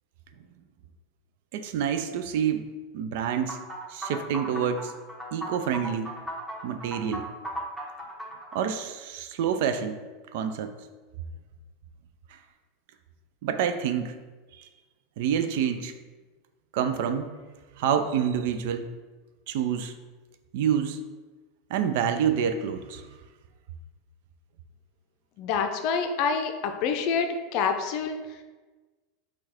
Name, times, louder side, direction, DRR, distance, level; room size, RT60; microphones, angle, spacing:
voice 1, 1.5-2.7 2.9-3.6 3.9-4.9 5.3-6.1 6.6-7.3 8.5-10.0 10.3-10.7 13.4-14.2 14.6-14.7 15.2-15.9 16.7-17.3 17.8-18.9 19.5-19.9 20.5-21.0 21.7-23.1, right 8 dB, 65° right, 8 dB, 0.4 m, -27 dB
sound 1, 3.5-8.6, right 1 dB, 5° right, 1.0 m, -37 dB
voice 2, 25.4-28.2, left 6 dB, 55° left, 6 dB, 0.5 m, -27 dB
4.5 x 2.3 x 4.3 m, 1.3 s
hypercardioid pair, 90°, 0 cm